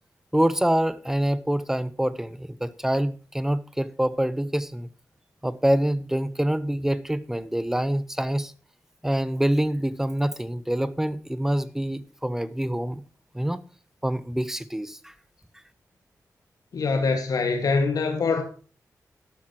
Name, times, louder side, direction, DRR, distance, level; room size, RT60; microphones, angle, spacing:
voice 1, 0.3-4.9 5.4-8.5 9.0-13.0 13.3-13.6 14.0-15.1, right 1 dB, 5° right, 0.9 m, -26 dB
voice 2, 16.7-18.4, left 4 dB, 75° left, 2.0 m, -24 dB
12.5 x 12.0 x 3.0 m
wide cardioid pair, 105°, 6 cm